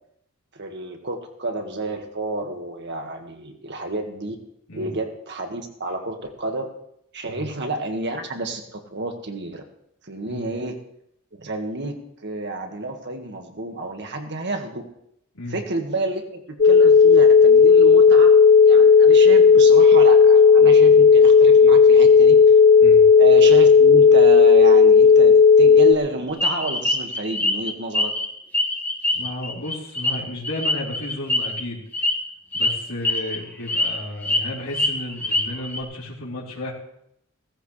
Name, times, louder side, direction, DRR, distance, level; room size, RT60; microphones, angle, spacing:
voice 1, 0.5-4.4 4.7-6.7 7.1-9.6 10.1-10.8 11.4-12.0 12.2-14.8 15.5-18.4 18.6-22.4 23.2-28.1, right 2 dB, 55° right, 4 dB, 1.9 m, -30 dB
sound 1, 16.6-25.9, left 5 dB, 35° left, 0.6 m, -12 dB
sound 2, 26.4-28.3 28.5-31.6 31.9-32.1 32.5-32.7 33.0-33.4 33.7-34.4 34.7-35.8, left 2 dB, 10° left, 1.7 m, -24 dB
voice 2, 29.1-31.8 32.5-36.7, left 1 dB, 80° left, -6 dB, 3.5 m, -33 dB
17.0 x 14.5 x 3.3 m, 0.74 s
head